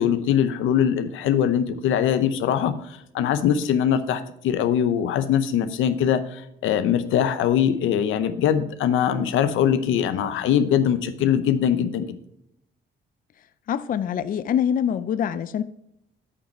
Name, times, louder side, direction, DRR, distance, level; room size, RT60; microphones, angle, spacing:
voice 1, 0.0-12.2, left 9 dB, 85° left, 0.7 m, -22 dB
voice 2, 13.7-15.6, left 9 dB, 45° left, 0.4 m, -24 dB
8.4 x 5.3 x 4.3 m
cardioid pair, 90°, 20 cm